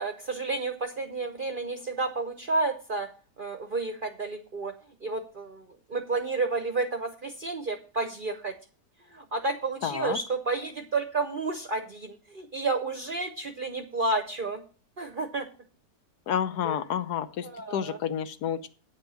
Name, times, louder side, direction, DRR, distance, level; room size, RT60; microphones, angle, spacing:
voice 1, 0.0-3.1 3.4-8.6 9.1-14.6 15.0-15.5 16.6-16.8 17.4-18.0, right 3 dB, 45° right, 8 dB, 0.7 m, -31 dB
voice 2, 9.8-10.2 16.3-18.7, left 9 dB, 75° left, 12 dB, 1.3 m, -30 dB
9.0 x 5.3 x 6.8 m, 0.37 s
omnidirectional pair, 1.8 m